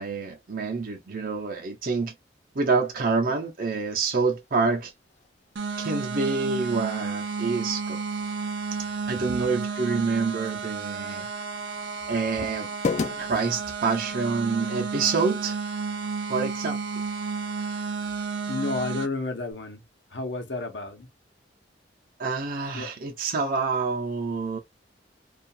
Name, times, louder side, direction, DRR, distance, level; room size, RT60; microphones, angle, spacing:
voice 1, 0.0-2.1 2.5-4.9 5.8-8.0 9.1-11.3 12.1-12.7 13.2-15.6 16.3-16.8 22.2-24.6, right 4 dB, 55° right, 0.7 m, -27 dB
sound 1, 3.9-14.2, left 4 dB, 40° left, 0.3 m, -39 dB
sound 2, 5.6-19.1, right 5 dB, 90° right, 0.6 m, -32 dB
voice 2, 18.5-19.8 20.1-21.1 22.7-22.9, left 3 dB, 85° left, 0.8 m, -31 dB
2.5 x 2.3 x 2.6 m
head